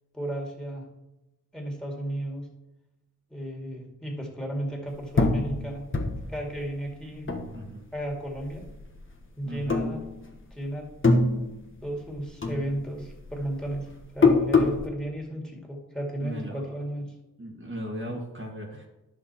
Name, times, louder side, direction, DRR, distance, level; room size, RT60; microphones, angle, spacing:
voice 1, 0.1-0.9 1.5-2.5 3.3-5.9 6.3-7.4 7.9-8.7 9.4-10.0 10.5-10.9 11.8-13.9 14.1-17.1, right 1 dB, ahead, 0 dB, 2.3 m, -34 dB
sound 1, 5.2-8.0 8.4-9.2 9.6-10.5 10.8-12.1 12.4-14.9, left 3 dB, 35° left, 1.4 m, -24 dB
voice 2, 7.5-7.9 9.4-9.8 16.2-16.6 17.4-18.9, equal, 35° right, -2 dB, 1.7 m, -37 dB
10.5 x 6.4 x 4.4 m, 0.99 s
cardioid pair, 65°, 35 cm